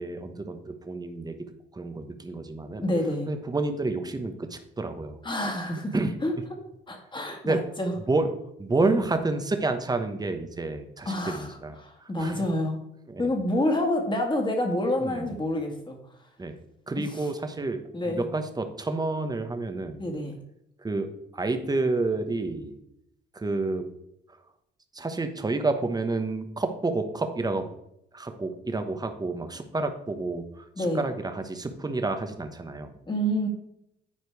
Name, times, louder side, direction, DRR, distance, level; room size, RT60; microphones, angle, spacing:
voice 1, 0.0-1.4 1.7-2.9 3.3-5.2 5.9-6.1 7.4-7.6 8.1-8.3 8.6-12.5 13.1-13.3 15.0-15.4 16.4-16.6 16.9-20.1 20.8-21.1 21.3-22.8 23.3-23.8 24.9-27.6 28.1-33.0, right 3 dB, 20° right, 7 dB, 1.0 m, -29 dB
voice 2, 2.8-3.3 5.2-5.9 6.2-6.3 6.9-7.9 8.8-9.0 11.1-12.8 13.2-16.0 17.9-18.3 20.0-20.4 30.8-31.1 33.1-33.5, left 1 dB, 25° left, 2 dB, 2.0 m, -28 dB
9.8 x 4.3 x 4.7 m, 0.79 s
cardioid pair, 90°, 20 cm